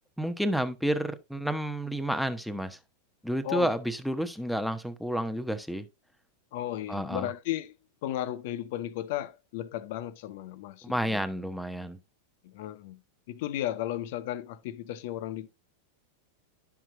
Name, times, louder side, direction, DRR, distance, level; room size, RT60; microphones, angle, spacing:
voice 1, 0.2-2.8 3.2-5.8 6.9-7.3 10.8-12.0, equal, ahead, 0.9 m, -30 dB
voice 2, 6.5-7.7 8.0-11.2 12.4-13.0 13.3-15.5, left 13 dB, 50° left, 0.7 m, -34 dB
11.0 x 5.9 x 2.7 m
figure-of-eight pair, 90°, 0 cm